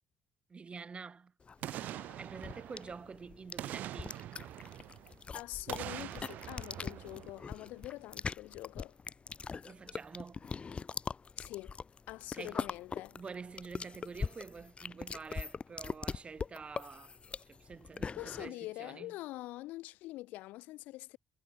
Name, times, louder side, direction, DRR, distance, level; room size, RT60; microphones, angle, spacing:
voice 1, 0.5-1.3 2.2-4.2 9.7-10.5 12.3-12.6 13.1-17.2 17.5-19.1, right 5 dB, 40° right, 5.1 m, -47 dB
sound 1, 1.5-18.5, left 5 dB, 40° left, 2.3 m, -42 dB
Boom, 1.6-3.1 3.6-5.2 5.7-7.9 8.3-8.4, right 13 dB, 75° right, 0.9 m, -44 dB
voice 2, 5.3-9.0 11.4-11.8 12.1-13.2 18.1-21.2, left 18 dB, 85° left, 1.0 m, -44 dB
supercardioid pair, 55°, 3 cm